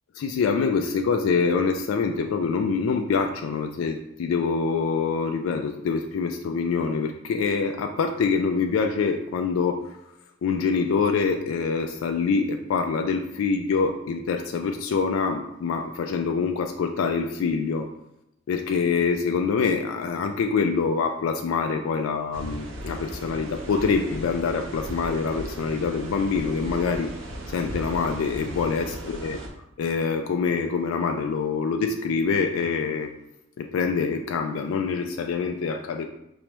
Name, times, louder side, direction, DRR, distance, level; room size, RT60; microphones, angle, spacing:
voice 1, 0.2-10.0 10.4-17.9 18.5-27.1 27.5-29.4 29.8-33.1 33.6-36.1, left 5 dB, 85° left, 4 dB, 0.3 m, -25 dB
sound 1, 22.3-29.5, right 1 dB, 70° right, 0.6 m, -37 dB
4.6 x 3.1 x 3.0 m, 0.85 s
head